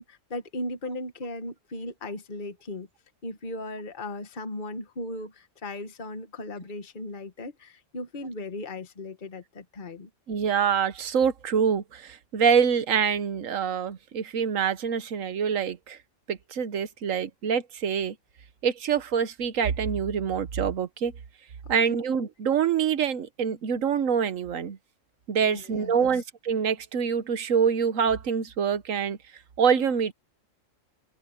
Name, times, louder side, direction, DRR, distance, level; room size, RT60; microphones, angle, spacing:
voice 1, 0.0-2.9 3.2-10.1 21.6-22.0 25.4-26.2, left 1 dB, 40° left, 1.5 m, -37 dB
voice 2, 10.3-16.0 16.3-18.2 18.6-21.1 21.7-24.8 25.3-29.2 29.6-30.1, right 7 dB, 80° right, 1.4 m, -25 dB
omnidirectional pair, 1.4 m